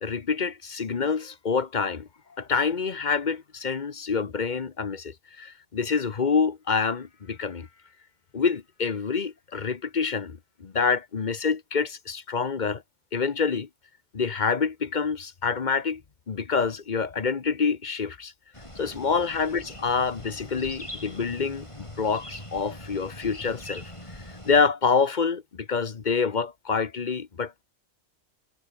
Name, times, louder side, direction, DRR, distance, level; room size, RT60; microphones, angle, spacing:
voice 1, 0.0-2.1 2.4-7.7 8.3-12.8 13.1-13.7 14.1-16.0 16.3-18.3 18.8-23.8 24.4-27.6, left 5 dB, 40° left, 1.0 m, -27 dB
sound 1, 18.5-24.6, left 1 dB, 20° left, 8.0 m, -42 dB
omnidirectional pair, 1.4 m